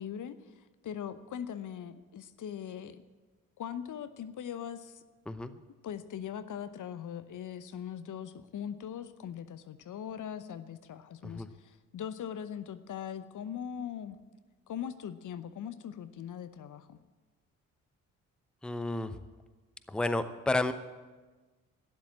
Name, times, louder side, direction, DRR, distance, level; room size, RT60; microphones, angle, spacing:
voice 1, 0.0-3.0 3.6-5.0 5.8-14.2 14.7-17.0, left 9 dB, 45° left, 12 dB, 0.9 m, -41 dB
voice 2, 18.6-19.2 19.9-20.7, left 2 dB, ahead, 12 dB, 0.8 m, -31 dB
12.5 x 10.5 x 8.5 m, 1.3 s
hypercardioid pair, 45°, 41 cm